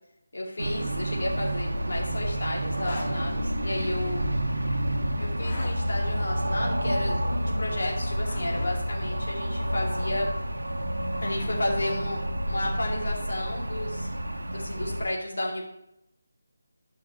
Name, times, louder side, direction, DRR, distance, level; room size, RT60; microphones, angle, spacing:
voice 1, 0.3-4.3 5.2-10.3 11.2-14.1 14.5-15.6, left 1 dB, 60° left, -2 dB, 2.5 m, -32 dB
sound 1, 0.6-15.1, equal, 65° right, 1.0 m, -29 dB
sound 2, 2.7-3.1 5.3-5.7 7.9-8.7 10.6-11.7, left 2 dB, 30° left, 2.3 m, -40 dB
12.5 x 5.7 x 3.3 m, 0.80 s
figure-of-eight pair, 155°, 0 cm